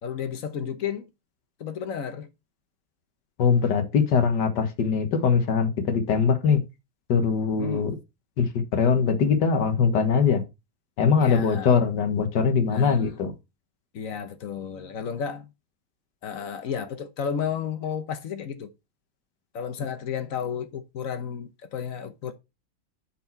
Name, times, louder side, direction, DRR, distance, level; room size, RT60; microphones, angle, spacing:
voice 1, 0.0-1.1 1.6-2.3 7.6-8.0 11.2-11.8 12.7-13.1 13.9-15.5 16.2-18.7 19.5-22.3, left 7 dB, 60° left, 1.2 m, -32 dB
voice 2, 3.4-6.6 7.1-8.0 8.4-10.4 11.0-13.3, left 6 dB, 90° left, 1.8 m, -22 dB
7.9 x 4.4 x 4.3 m
omnidirectional pair, 1.8 m